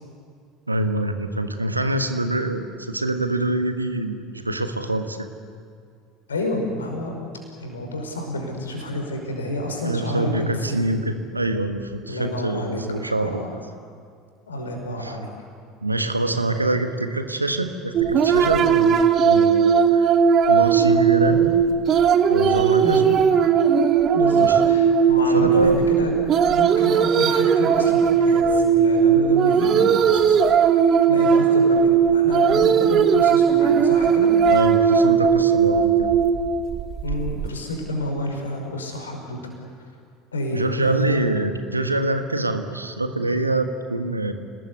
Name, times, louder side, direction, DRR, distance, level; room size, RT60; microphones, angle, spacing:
voice 1, 0.7-5.3 9.8-13.6 15.0-15.2 15.8-20.1 20.5-21.5 22.3-23.2 24.3-24.6 25.2-25.8 34.5-36.2 40.5-44.3, right 2 dB, 85° right, 8 dB, 1.5 m, -25 dB
voice 2, 6.3-7.1 7.6-10.9 12.1-13.5 14.5-15.3 22.8-23.1 24.1-26.1 26.4-30.4 31.1-34.5 37.0-39.4 40.3-41.3, left 1 dB, 75° left, 2 dB, 5.3 m, -29 dB
sound 1, 17.9-37.5, right 7 dB, 40° right, 1.4 m, -18 dB
29.0 x 19.5 x 8.4 m, 2.2 s
figure-of-eight pair, 70°, 0 cm